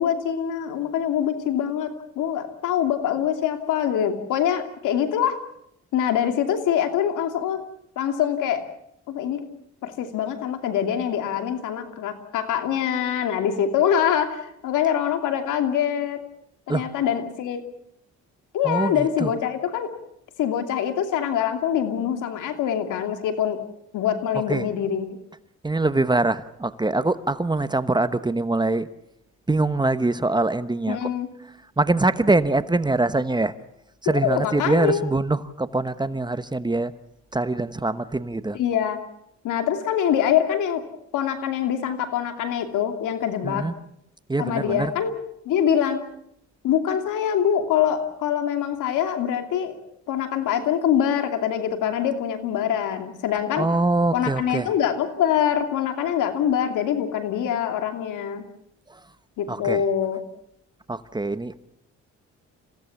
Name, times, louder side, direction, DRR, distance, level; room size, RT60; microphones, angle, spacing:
voice 1, 0.0-5.4 5.9-7.7 8.0-8.6 9.1-9.4 9.8-16.2 16.7-17.6 18.5-19.9 20.4-23.6 23.9-25.1 30.9-31.3 34.1-35.0 38.5-39.0 39.4-40.8 41.1-43.7 44.4-45.2 45.4-46.0 46.6-49.8 50.1-53.7 54.1-58.4 59.4-60.2, left 9 dB, 85° left, 6 dB, 2.7 m, -24 dB
voice 2, 18.6-19.3 24.3-24.7 25.6-28.9 29.5-31.1 31.8-33.5 34.0-36.9 37.3-38.6 43.4-43.7 44.3-44.9 53.6-54.7 58.9-59.0 59.5-59.8 60.9-61.6, right 2 dB, 15° right, 13 dB, 1.0 m, -23 dB
27.5 x 16.5 x 7.2 m, 0.75 s
cardioid pair, 90°, 30 cm